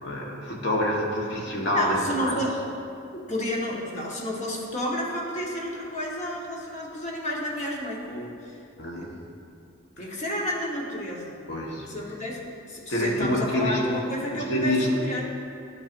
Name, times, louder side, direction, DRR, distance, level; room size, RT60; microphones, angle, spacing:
voice 1, 0.0-2.4 8.8-9.1 10.0-10.1 11.5-11.9 12.9-14.0 14.3-14.9, left 1 dB, 60° left, -2 dB, 1.2 m, -27 dB
voice 2, 1.7-2.5 3.1-8.6 9.0-9.1 10.0-11.4 11.9-15.4, equal, 35° left, -3 dB, 1.1 m, -31 dB
11.0 x 5.7 x 2.6 m, 2.4 s
head